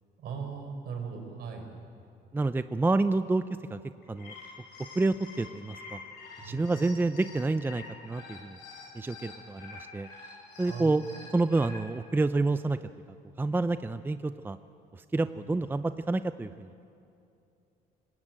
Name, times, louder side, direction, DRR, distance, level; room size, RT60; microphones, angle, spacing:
voice 1, 0.2-1.7 6.4-6.8 10.6-10.9 15.3-15.4, right 6 dB, 65° right, 3 dB, 5.6 m, -38 dB
voice 2, 2.3-3.4 3.7-3.8 4.1-4.3 5.0-6.0 6.4-8.6 8.9-10.1 10.6-11.0 11.3-12.8 13.4-14.6 14.9-16.7, right 3 dB, 10° right, 11 dB, 0.6 m, -28 dB
sound 1, 4.0-11.8, left 4 dB, 75° left, 7.2 m, -47 dB
25.0 x 20.0 x 9.1 m, 2.6 s
cardioid pair, 110°, 17 cm